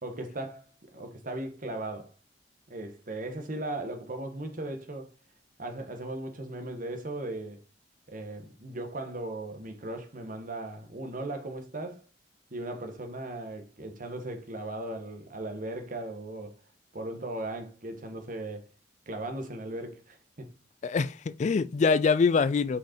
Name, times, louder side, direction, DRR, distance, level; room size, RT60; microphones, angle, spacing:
voice 1, 0.0-2.1 2.7-5.1 5.6-7.6 8.1-12.0 12.5-16.6 16.9-18.7 19.1-20.5, right 2 dB, 50° right, 1.4 m, -37 dB
voice 2, 20.8-22.8, left 5 dB, 40° left, 0.3 m, -24 dB
5.8 x 5.1 x 4.3 m
head